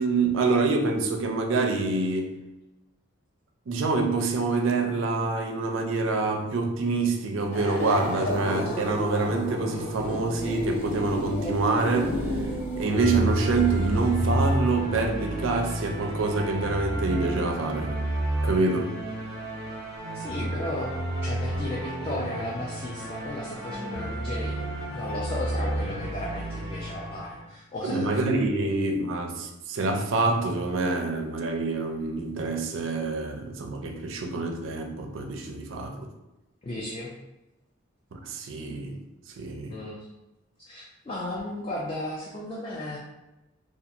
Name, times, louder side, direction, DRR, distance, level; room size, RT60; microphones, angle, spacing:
voice 1, 0.0-2.4 3.7-12.2 12.8-18.0 18.4-19.0 27.8-36.1 38.1-39.0 39.4-39.8, right 3 dB, 70° right, 0.4 m, -26 dB
sound 1, 7.5-14.3, equal, 55° left, 1.0 m, -31 dB
sound 2, 12.9-27.4, right 1 dB, ahead, 1.3 m, -31 dB
voice 2, 20.1-20.9 21.2-24.6 24.9-28.1 36.6-37.1 39.7-40.1 40.7-43.0, left 1 dB, 25° left, 0.3 m, -34 dB
2.8 x 2.3 x 2.4 m
head